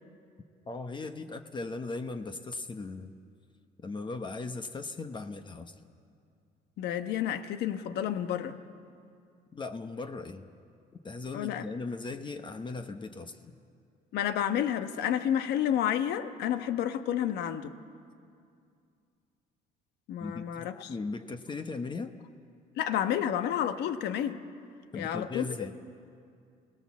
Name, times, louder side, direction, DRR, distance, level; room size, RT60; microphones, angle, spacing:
voice 1, 0.7-3.1 3.8-5.7 9.5-10.5 11.0-13.3 20.2-22.1 24.9-25.7, left 3 dB, 30° left, 7 dB, 1.0 m, -38 dB
voice 2, 6.8-8.5 11.3-11.7 14.1-17.8 20.1-20.9 22.8-24.4 24.9-25.4, left 10 dB, 75° left, 9 dB, 1.2 m, -30 dB
28.0 x 18.5 x 7.3 m, 2.4 s
cardioid pair, 110°, 17 cm